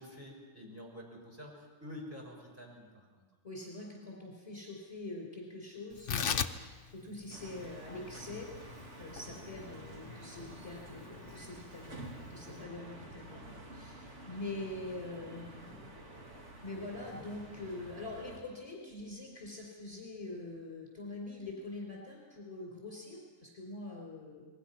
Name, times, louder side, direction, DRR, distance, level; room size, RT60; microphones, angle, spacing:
voice 1, 0.0-3.2, left 1 dB, 10° right, -1 dB, 5.6 m, -48 dB
voice 2, 3.4-15.9 16.6-24.5, left 2 dB, 20° left, -2 dB, 4.7 m, -44 dB
Tearing, 5.9-12.6, left 7 dB, 55° left, 1.1 m, -40 dB
sound 1, 7.3-18.4, right 1 dB, 50° right, 2.7 m, -50 dB
28.0 x 21.0 x 6.0 m, 1.4 s
omnidirectional pair, 1.6 m